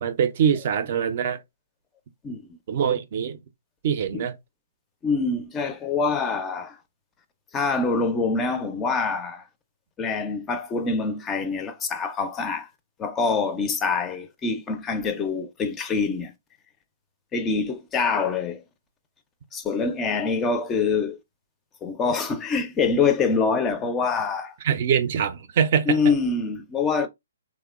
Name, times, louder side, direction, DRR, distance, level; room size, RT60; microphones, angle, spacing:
voice 1, 0.0-1.4 2.7-3.4 3.8-4.3 24.6-26.0, right 8 dB, 50° right, 0.4 m, -23 dB
voice 2, 5.0-6.8 7.5-9.4 10.0-12.7 13.0-16.3 17.3-18.6 19.5-21.2 21.8-24.5 25.9-27.1, left 4 dB, 15° left, 0.4 m, -25 dB
2.8 x 2.1 x 2.3 m
hypercardioid pair, 145°, 0 cm